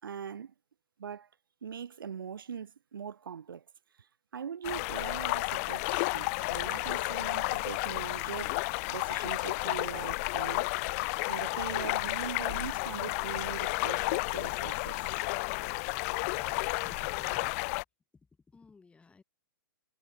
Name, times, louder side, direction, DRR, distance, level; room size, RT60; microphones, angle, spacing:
voice 1, 0.0-0.5 1.0-1.3 1.6-3.6 4.3-8.6 8.9-10.7 11.3-15.0, right 7 dB, 70° right, 4.9 m, -41 dB
sound 1, 4.6-17.8, left 27 dB, 40° left, 1.6 m, -32 dB
voice 2, 15.9-17.5 18.5-19.2, left 4 dB, 10° left, 4.5 m, -56 dB
figure-of-eight pair, 120°, 12 cm